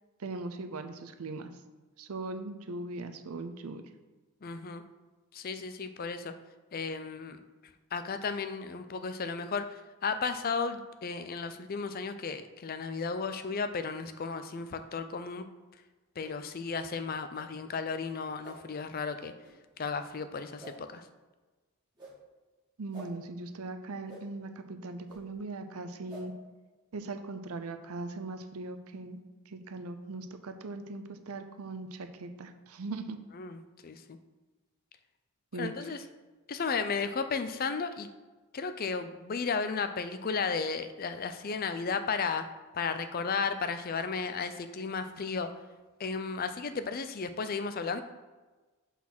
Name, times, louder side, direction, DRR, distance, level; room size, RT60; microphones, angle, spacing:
voice 1, 0.2-1.5 2.0-3.8 22.8-26.3 26.9-29.2 29.5-33.2 35.5-35.7, right 3 dB, 80° right, 8 dB, 0.6 m, -39 dB
voice 2, 4.4-4.8 5.3-6.3 6.7-7.4 7.9-15.4 16.2-19.3 19.8-21.0 33.3-34.2 35.6-36.0 36.5-38.1 38.5-42.4 42.7-45.5 46.0-48.0, left 5 dB, 40° left, 9 dB, 0.4 m, -34 dB
sound 1, 16.2-16.3 17.3-17.5 18.4-18.6 19.4-19.5 20.6-20.7 21.9-22.1 22.9-23.1 24.1-24.2 25.1-25.2 26.1-26.2, right 2 dB, 20° right, 2.3 m, -48 dB
5.9 x 4.2 x 6.0 m, 1.3 s
head